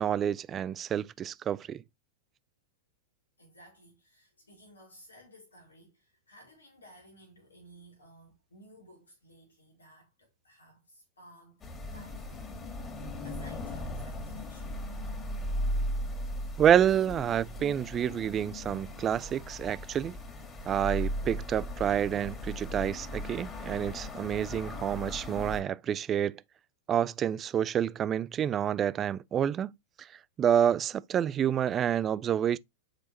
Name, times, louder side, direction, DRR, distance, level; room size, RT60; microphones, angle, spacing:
voice 1, 0.0-1.8 16.6-20.2 20.7-26.4 26.9-29.7 30.0-30.1 30.4-32.6, right 9 dB, 25° right, 0.3 m, -28 dB
voice 2, 3.4-12.6 13.2-14.9, equal, 80° left, 1.9 m, -56 dB
sound 1, 11.6-25.6, left 1 dB, 25° left, 1.9 m, -37 dB
7.4 x 4.4 x 2.8 m
figure-of-eight pair, 95°, 0 cm